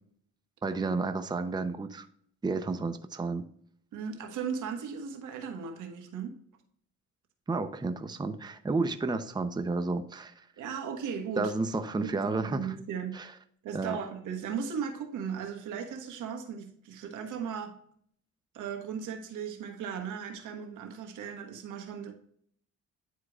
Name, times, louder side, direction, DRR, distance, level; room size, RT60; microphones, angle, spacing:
voice 1, 0.6-2.1 2.4-3.4 7.5-10.5 11.4-12.7 13.1-13.3 13.7-14.0, right 3 dB, 15° right, 8 dB, 0.6 m, -31 dB
voice 2, 3.9-6.4 10.6-11.5 12.0-13.3 13.6-17.8 18.5-22.1, right 7 dB, 85° right, 4 dB, 1.4 m, -37 dB
9.9 x 4.7 x 2.4 m, 0.64 s
cardioid pair, 90°, 30 cm